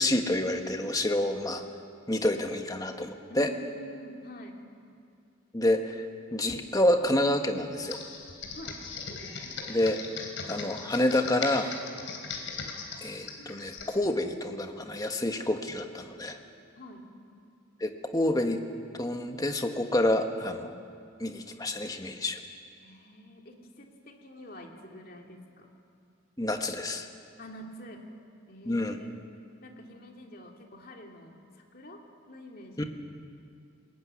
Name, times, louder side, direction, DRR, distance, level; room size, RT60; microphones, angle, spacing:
voice 1, 0.0-1.6 2.1-3.5 5.5-6.1 6.3-8.0 9.7-11.7 13.0-16.4 17.8-18.6 19.0-20.8 21.2-22.4 26.4-27.1 28.7-29.0 32.8-32.9, left 1 dB, 20° left, 5 dB, 1.4 m, -28 dB
voice 2, 3.3-4.6 8.5-8.8 16.8-17.1 22.8-25.7 27.4-28.0 28.5-29.2 29.6-32.9, equal, 45° left, 1 dB, 2.8 m, -47 dB
Computer keyboard, 7.8-13.9, left 5 dB, 70° left, 3.8 m, -39 dB
21.0 x 20.5 x 9.6 m, 2.4 s
head